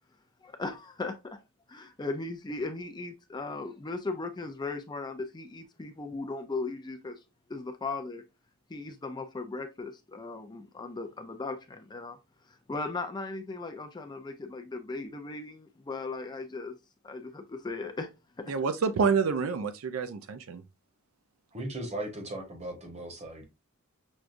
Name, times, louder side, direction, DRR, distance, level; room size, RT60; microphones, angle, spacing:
voice 1, 0.4-1.4 1.7-7.2 7.5-8.2 8.7-12.2 12.5-16.7 17.0-18.1 18.4-18.5, left 3 dB, 20° left, 0.4 m, -37 dB
voice 2, 18.5-20.6, right 5 dB, 65° right, 0.4 m, -28 dB
voice 3, 21.5-23.4, right 1 dB, 30° right, 1.1 m, -37 dB
6.2 x 2.3 x 2.5 m
head